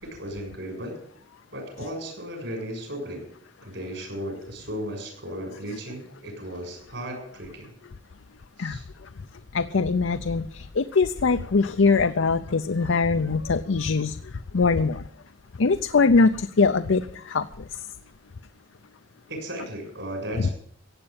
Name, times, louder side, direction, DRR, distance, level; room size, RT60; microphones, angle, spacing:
voice 1, 0.0-1.0 1.5-3.3 3.6-7.7 8.6-8.8 19.3-20.5, equal, 65° right, 3 dB, 6.9 m, -35 dB
voice 2, 9.5-10.4 10.8-14.1 14.5-15.0 15.6-16.3 16.6-17.0 17.3-17.4, left 4 dB, 80° left, 9 dB, 0.6 m, -21 dB
16.0 x 8.9 x 8.7 m, 0.63 s
head